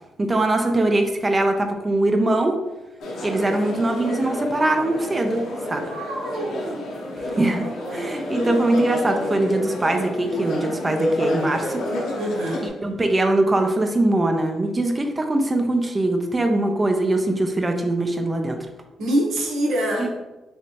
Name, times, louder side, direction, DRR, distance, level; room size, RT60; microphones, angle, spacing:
voice 1, 0.2-2.5 3.2-5.8 7.3-11.8 12.8-18.6 20.0-20.1, right 2 dB, 25° right, 5 dB, 0.4 m, -22 dB
sound 1, 3.0-12.7, left 1 dB, 75° left, 0.7 m, -29 dB
voice 2, 5.7-6.9 12.2-12.7 19.0-20.1, right 1 dB, 80° right, -2 dB, 0.9 m, -25 dB
3.2 x 2.8 x 2.8 m, 1.1 s
cardioid pair, 100°, 0 cm